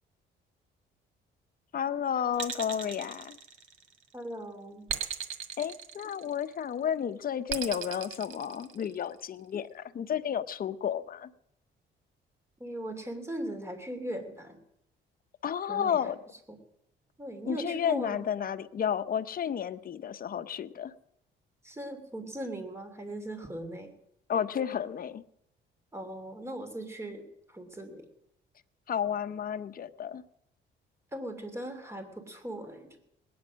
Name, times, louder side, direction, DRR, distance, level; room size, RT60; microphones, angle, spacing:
voice 1, 1.7-3.4 5.6-11.3 15.4-16.2 17.5-20.9 24.3-25.2 28.9-30.2, left 8 dB, 45° left, 11 dB, 0.8 m, -32 dB
sound 1, 2.3-4.0 4.9-6.5 7.5-9.1, right 8 dB, 85° right, 1.6 m, -37 dB
voice 2, 4.1-4.9 12.6-14.6 15.7-16.1 16.5-16.6 17.2-18.2 21.6-23.9 25.9-28.0 31.1-33.0, right 1 dB, 15° right, 6 dB, 2.8 m, -39 dB
20.0 x 9.5 x 6.3 m, 0.77 s
cardioid pair, 90°, 20 cm